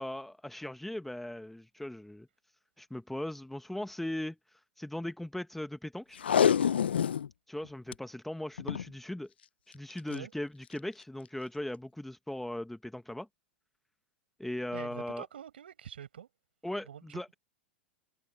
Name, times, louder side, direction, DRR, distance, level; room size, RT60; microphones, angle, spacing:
voice 1, 0.0-2.3 2.8-4.4 4.8-6.2 7.5-9.3 9.7-13.3 14.4-15.3 16.6-17.3, left 1 dB, 5° left, 1.3 m, -38 dB
Packing tape duct tape, 6.2-7.3 7.6-7.7 7.9-8.0 8.6-8.9 9.9-10.1 10.7-10.8, left 8 dB, 85° left, 0.5 m, -26 dB
voice 2, 14.7-16.3 16.9-17.4, right 9 dB, 80° right, 7.5 m, -46 dB
hypercardioid pair, 105°, 6 cm